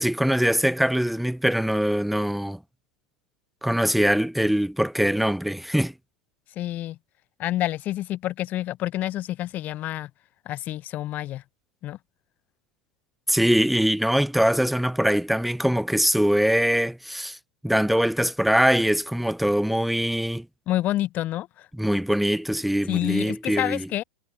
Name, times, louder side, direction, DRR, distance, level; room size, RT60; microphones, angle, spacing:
voice 1, 0.0-2.6 3.6-5.9 13.3-17.4 17.6-20.5 21.8-23.9, equal, ahead, 0.9 m, -22 dB
voice 2, 6.6-7.0 7.4-10.1 10.4-11.4 11.8-12.0 20.7-21.7 22.9-24.0, left 14 dB, 45° left, 1.3 m, -28 dB
hypercardioid pair, 90°, 4 cm